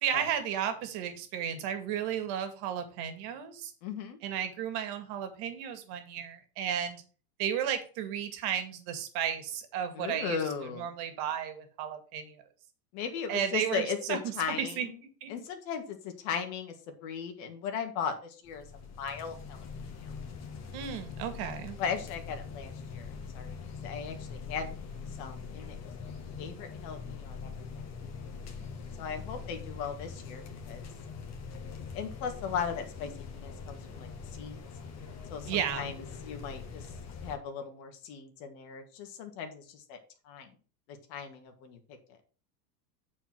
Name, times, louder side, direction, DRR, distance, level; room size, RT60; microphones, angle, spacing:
voice 1, 0.0-3.7 4.2-7.0 7.4-10.4 10.8-12.4 13.3-14.2 14.6-14.9 15.2-15.3 20.7-21.8 35.5-35.9, right 9 dB, 50° right, 8 dB, 2.3 m, -33 dB
voice 2, 3.8-4.2 9.9-10.9 12.9-15.0 15.3-16.7 17.0-19.7 20.0-20.1 21.8-24.7 25.2-25.8 26.0-27.9 29.0-30.9 31.9-34.6 35.3-36.9 37.2-40.0 40.2-40.5 40.9-41.8, left 6 dB, 55° left, 5 dB, 2.3 m, -37 dB
sound 1, 18.4-37.4, left 5 dB, 30° left, 2.0 m, -43 dB
8.7 x 4.9 x 6.2 m, 0.38 s
supercardioid pair, 125°, 49 cm